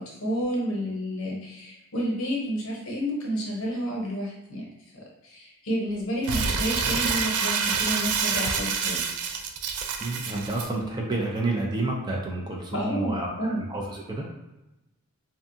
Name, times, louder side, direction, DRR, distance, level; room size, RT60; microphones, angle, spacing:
voice 1, 0.0-4.6 5.2-9.0 12.7-13.6, equal, 65° left, -2 dB, 0.8 m, -30 dB
Crumpling crinkling, 6.2-10.7, right 5 dB, 85° right, 0.3 m, -27 dB
voice 2, 10.0-14.3, right 2 dB, 20° right, -1 dB, 0.4 m, -30 dB
2.6 x 2.3 x 2.6 m, 0.98 s
head